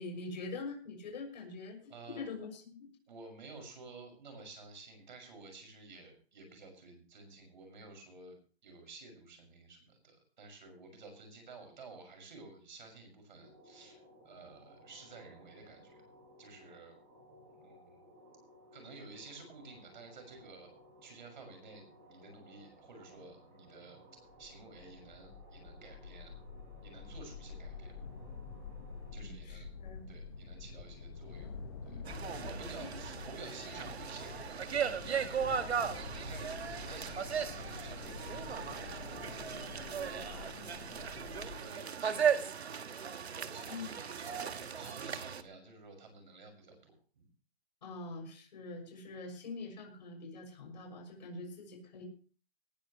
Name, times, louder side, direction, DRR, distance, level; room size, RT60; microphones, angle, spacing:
voice 1, 0.0-2.9 29.2-30.1 32.8-32.9 40.2-40.8 43.7-43.9 47.8-52.0, left 3 dB, 40° left, 2 dB, 6.6 m, -44 dB
voice 2, 1.9-2.4 3.1-8.4 8.6-14.0 14.2-16.1 16.4-17.0 17.5-18.1 18.7-20.7 21.0-24.0 24.4-26.3 26.8-28.0 29.1-29.8 30.1-31.5 31.8-35.8 36.1-40.6 41.1-42.6 43.3-47.3, right 3 dB, 45° right, 5 dB, 6.2 m, -52 dB
sound 1, 13.4-29.1, equal, 20° right, 7.5 m, -60 dB
sound 2, 24.3-41.6, left 4 dB, 20° left, 1.5 m, -47 dB
sound 3, 32.1-45.4, right 7 dB, 70° right, 1.6 m, -37 dB
19.0 x 14.5 x 3.1 m, 0.40 s
hypercardioid pair, 180°, 33 cm